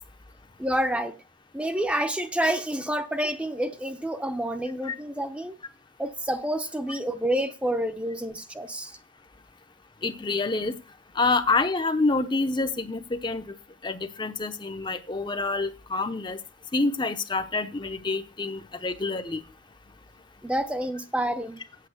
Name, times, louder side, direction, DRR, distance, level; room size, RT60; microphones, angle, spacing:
voice 1, 0.6-1.2 1.5-5.5 6.0-8.9 20.4-21.6, right 1 dB, 5° right, 0.7 m, -28 dB
voice 2, 10.0-10.8 11.1-13.5 13.8-16.4 16.7-19.4, left 3 dB, 25° left, 0.7 m, -27 dB
8.5 x 7.5 x 6.5 m
head